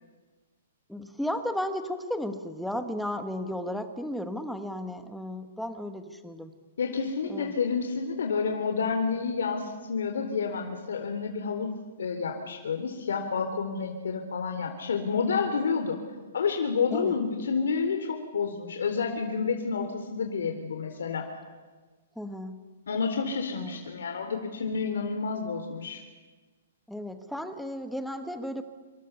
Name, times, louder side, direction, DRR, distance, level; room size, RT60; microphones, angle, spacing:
voice 1, 0.9-6.5 7.3-7.5 16.9-17.2 22.2-22.7 23.5-23.8 26.9-28.6, left 1 dB, ahead, 8 dB, 1.2 m, -34 dB
voice 2, 6.8-11.7 12.0-16.0 16.3-21.3 22.9-26.0, left 5 dB, 80° left, 4 dB, 3.5 m, -29 dB
26.5 x 25.5 x 7.0 m, 1.3 s
hypercardioid pair, 180°, 0 cm